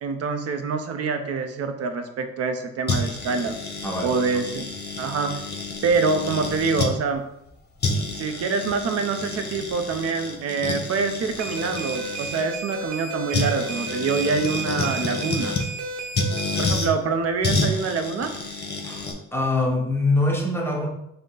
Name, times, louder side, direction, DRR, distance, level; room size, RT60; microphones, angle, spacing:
voice 1, 0.0-3.6 4.0-4.6 5.0-5.4 5.8-7.2 8.1-15.6 16.6-18.3, right 4 dB, 55° right, 7 dB, 0.6 m, -25 dB
sound 1, 2.9-6.9 7.5-7.6 7.8-12.4 13.3-15.7 16.1-16.9 17.4-19.1, left 3 dB, 35° left, 1.0 m, -29 dB
voice 2, 3.8-4.1 16.6-16.7 18.8-20.9, left 2 dB, 5° left, 0 dB, 0.9 m, -24 dB
sound 2, 11.4-16.7, right 3 dB, 80° right, 0.9 m, -33 dB
5.1 x 2.2 x 3.8 m, 0.79 s
cardioid pair, 90°, 30 cm